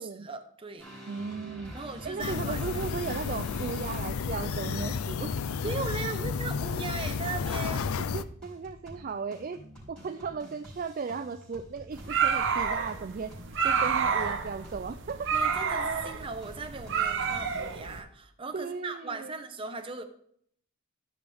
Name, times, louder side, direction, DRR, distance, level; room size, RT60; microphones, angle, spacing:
voice 1, 0.0-0.9 1.7-2.9 5.6-7.8 13.6-13.9 15.3-20.0, right 4 dB, 25° right, 6 dB, 0.9 m, -38 dB
sound 1, 0.8-17.6, equal, 5° left, 4.6 m, -48 dB
voice 2, 1.1-1.7 2.0-5.4 5.6-5.7 8.0-9.6 9.9-13.4 13.6-15.3 18.5-19.3, right 5 dB, 40° right, 9 dB, 0.4 m, -36 dB
sound 2, 2.2-8.2, left 5 dB, 85° left, 0.4 m, -32 dB
sound 3, 11.9-18.0, right 6 dB, 60° right, 1.0 m, -29 dB
14.5 x 6.1 x 3.5 m, 0.65 s
head